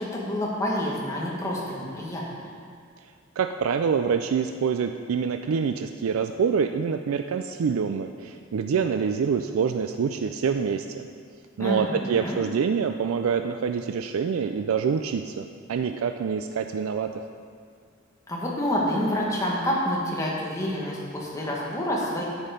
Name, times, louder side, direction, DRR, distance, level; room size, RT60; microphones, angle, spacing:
voice 1, 0.0-2.2 11.6-12.4 18.3-22.2, equal, 15° left, -4 dB, 1.6 m, -28 dB
voice 2, 3.4-11.1 11.6-17.3, right 6 dB, 90° right, 7 dB, 0.4 m, -26 dB
9.8 x 7.2 x 5.1 m, 2.1 s
head